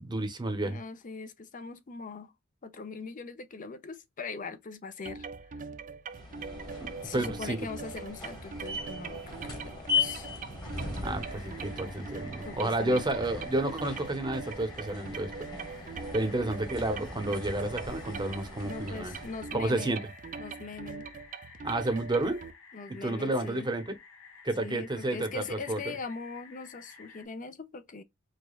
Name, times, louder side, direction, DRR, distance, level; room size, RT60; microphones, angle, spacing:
voice 1, 0.0-0.8 6.8-7.6 11.0-15.3 16.1-19.1 19.5-20.0 21.6-22.4 23.0-23.9 24.4-26.0, right 2 dB, 20° right, 0.8 m, -31 dB
voice 2, 0.6-2.3 2.6-5.3 7.0-10.3 12.4-13.1 18.6-20.0 20.4-21.1 22.7-23.7 24.6-28.0, left 4 dB, 40° left, 0.6 m, -41 dB
sound 1, 5.0-22.5, right 5 dB, 40° right, 0.4 m, -42 dB
sound 2, 6.1-19.6, left 4 dB, 20° left, 1.4 m, -39 dB
sound 3, 11.2-27.3, left 5 dB, 65° left, 1.1 m, -53 dB
5.0 x 2.3 x 2.3 m
head